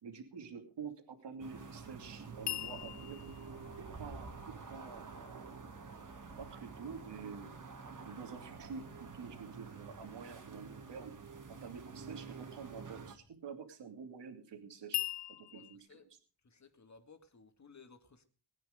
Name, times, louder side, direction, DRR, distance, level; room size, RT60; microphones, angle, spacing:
voice 1, 0.0-3.2 3.8-5.5 6.4-7.5 8.0-11.2 11.5-15.0 15.4-16.2, right 6 dB, 65° right, 2.8 m, -48 dB
sound 1, 1.4-13.1, right 4 dB, 40° right, 2.7 m, -49 dB
sound 2, 2.5-5.6 14.9-15.8, left 13 dB, 65° left, 0.8 m, -41 dB
voice 2, 15.5-16.1 16.4-18.3, left 4 dB, 35° left, 2.3 m, -59 dB
20.0 x 9.8 x 5.1 m
cardioid pair, 90°, 45 cm